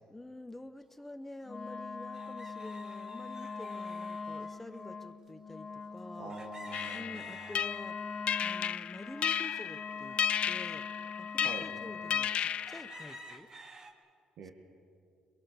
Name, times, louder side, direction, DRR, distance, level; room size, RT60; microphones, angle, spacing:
voice 1, 0.1-6.4 6.9-8.1 8.4-10.2 10.5-10.9 11.2-13.5 14.4-14.5, left 1 dB, 10° left, 11 dB, 1.0 m, -48 dB
sound 1, 1.0-1.1 2.1-4.9 6.3-8.0 8.5-10.4 11.1-11.2 11.8-11.9 12.3-13.9, right 3 dB, 30° right, 2.0 m, -53 dB
Wind instrument woodwind instrument, 1.4-12.5, left 4 dB, 35° left, 1.2 m, -43 dB
voice 2, 6.2-7.3 11.4-11.7 14.4-14.5, right 5 dB, 75° right, 3 dB, 1.8 m, -45 dB
sound 2, 6.7-13.4, left 9 dB, 55° left, 0.4 m, -34 dB
22.5 x 22.0 x 6.8 m, 2.3 s
cardioid pair, 110°, 2 cm